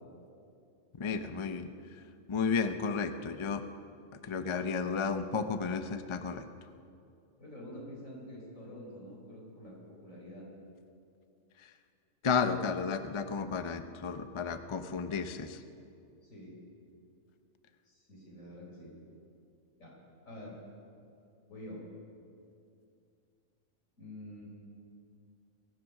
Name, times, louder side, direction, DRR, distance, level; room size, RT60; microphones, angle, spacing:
voice 1, 1.0-1.7 2.3-3.6 4.2-6.4 12.2-15.6, left 5 dB, 40° left, 9 dB, 0.4 m, -32 dB
voice 2, 7.4-9.7 10.0-10.5 16.2-16.5 17.8-18.9 19.8-19.9 20.2-20.6 21.5-21.8 24.0-24.5, left 1 dB, 80° left, -3 dB, 4.4 m, -47 dB
23.0 x 7.9 x 6.4 m, 2.5 s
omnidirectional pair, 1.3 m